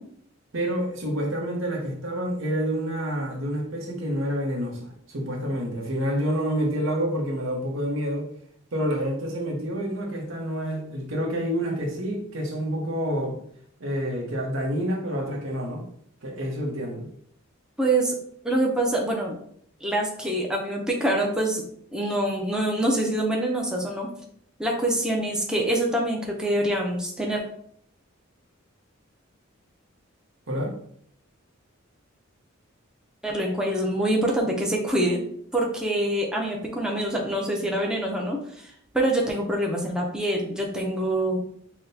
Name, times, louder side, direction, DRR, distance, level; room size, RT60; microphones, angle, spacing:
voice 1, 0.5-8.3 8.7-13.4 13.8-15.8 16.2-17.1 30.5-30.7, equal, 70° right, -1 dB, 0.9 m, -28 dB
voice 2, 17.8-18.2 18.4-19.4 19.8-21.6 21.9-24.1 24.6-27.4 33.2-35.2 35.5-41.4, right 1 dB, 5° right, -1 dB, 0.5 m, -25 dB
5.8 x 2.1 x 2.7 m, 0.66 s
head